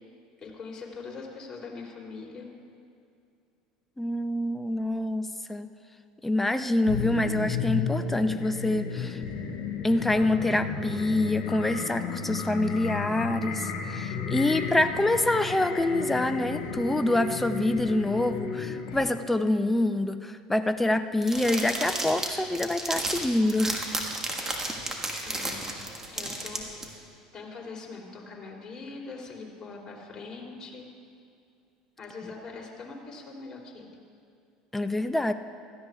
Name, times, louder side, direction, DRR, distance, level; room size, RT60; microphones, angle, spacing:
voice 1, 0.4-2.5 25.2-25.7 26.1-30.9 32.0-33.9, left 4 dB, 25° left, -3 dB, 3.2 m, -42 dB
voice 2, 4.0-5.7 6.2-9.2 9.8-23.8 34.7-35.3, left 1 dB, 10° left, 9 dB, 0.5 m, -26 dB
sound 1, 6.9-19.0, left 5 dB, 70° left, 1.4 m, -33 dB
sound 2, 21.2-26.8, right 2 dB, 20° right, 1.6 m, -32 dB
16.5 x 13.5 x 2.4 m, 2.4 s
hypercardioid pair, 80°, 3 cm